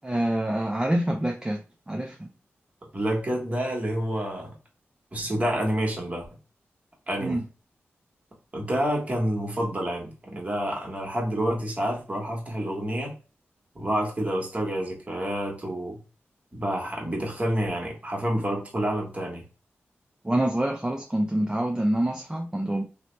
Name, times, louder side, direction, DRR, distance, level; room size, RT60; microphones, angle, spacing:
voice 1, 0.0-1.6 1.9-2.3 7.2-7.4 20.2-22.8, right 1 dB, 15° right, 0.4 m, -26 dB
voice 2, 2.9-4.5 5.1-6.2 7.1-7.4 8.5-13.1 13.7-16.0 16.5-19.4, equal, 30° right, 1.2 m, -28 dB
2.7 x 2.1 x 3.1 m
cardioid pair, 50°, 5 cm